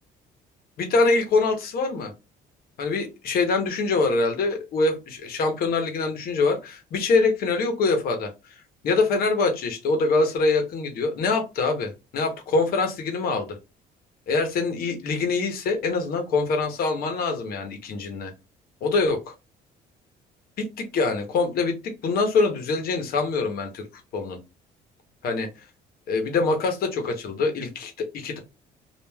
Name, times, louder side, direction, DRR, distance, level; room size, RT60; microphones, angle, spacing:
voice 1, 0.8-2.1 2.8-8.3 8.8-13.6 14.3-18.3 18.8-19.3 20.6-23.9 24.1-24.4 25.2-25.5 26.1-28.4, left 3 dB, 65° left, 5 dB, 0.8 m, -24 dB
3.3 x 2.4 x 2.2 m, 0.26 s
cardioid pair, 110°, 17 cm